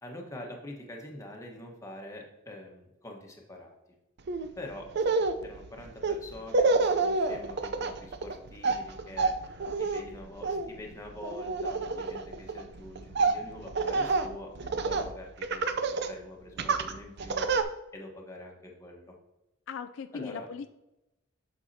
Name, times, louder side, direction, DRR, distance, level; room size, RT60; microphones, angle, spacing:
voice 1, 0.0-3.7 4.6-9.3 9.8-17.4 17.9-19.1 20.1-20.5, left 1 dB, 15° left, 1 dB, 1.2 m, -45 dB
Laughter, 4.3-4.5 4.9-15.1 15.4-16.1 16.6-17.6, right 3 dB, 55° right, 0.5 m, -29 dB
voice 2, 19.7-20.7, left 6 dB, 65° left, 10 dB, 0.3 m, -39 dB
8.2 x 6.3 x 2.7 m, 0.93 s
head